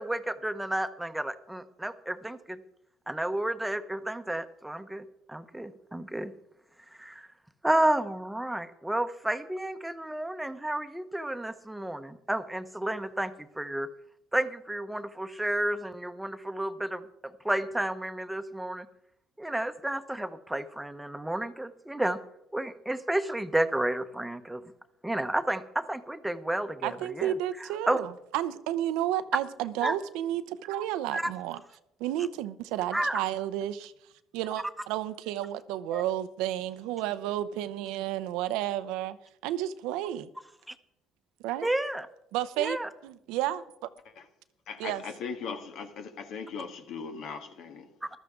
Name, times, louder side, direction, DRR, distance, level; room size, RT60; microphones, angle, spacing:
voice 1, 0.0-2.6 3.1-6.3 7.0-7.3 7.6-13.9 14.3-17.0 17.4-18.9 19.4-22.2 22.5-24.6 25.0-27.3 27.9-28.0 29.8-30.0 31.1-31.3 32.9-33.2 35.9-36.0 41.6-42.1 42.6-42.9 48.0-48.1, right 1 dB, 5° right, 0.9 m, -31 dB
voice 2, 26.8-31.6 32.0-33.9 34.3-39.2 39.4-40.3 41.4-41.7 42.3-43.9 44.8-45.0, right 12 dB, 85° right, 0.6 m, -32 dB
voice 3, 44.7-47.9, left 5 dB, 70° left, 1.6 m, -39 dB
14.5 x 12.5 x 3.7 m
supercardioid pair, 85°, 0 cm